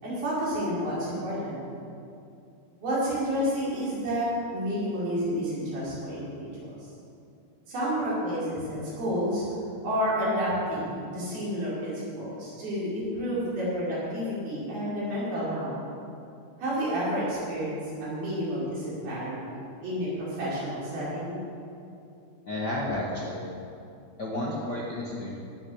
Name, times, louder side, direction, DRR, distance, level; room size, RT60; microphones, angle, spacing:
voice 1, 0.0-1.7 2.8-6.8 7.7-9.5 9.8-15.7 16.6-19.6 19.8-21.4, equal, 75° right, -8 dB, 6.6 m, -30 dB
voice 2, 22.5-23.5 24.2-25.4, left 1 dB, 80° left, -3 dB, 0.9 m, -31 dB
17.5 x 8.7 x 7.0 m, 2.6 s
omnidirectional pair, 4.3 m